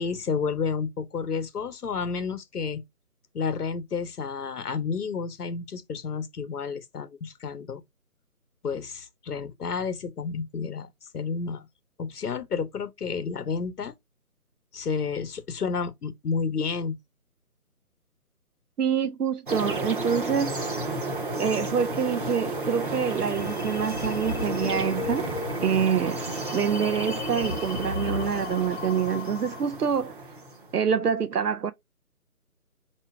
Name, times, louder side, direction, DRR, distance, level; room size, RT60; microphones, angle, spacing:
voice 1, 0.0-2.8 3.3-7.8 8.6-11.7 12.0-13.9 14.7-17.0, left 5 dB, 80° left, 0.8 m, -31 dB
voice 2, 18.8-20.5 21.4-25.3 25.6-26.2 26.5-30.2 30.7-31.7, right 7 dB, 85° right, 0.6 m, -26 dB
sound 1, 19.5-30.8, right 2 dB, 35° right, 0.7 m, -32 dB
sound 2, 22.8-29.8, left 4 dB, 45° left, 0.9 m, -36 dB
4.4 x 2.8 x 3.3 m
figure-of-eight pair, 155°, 45 cm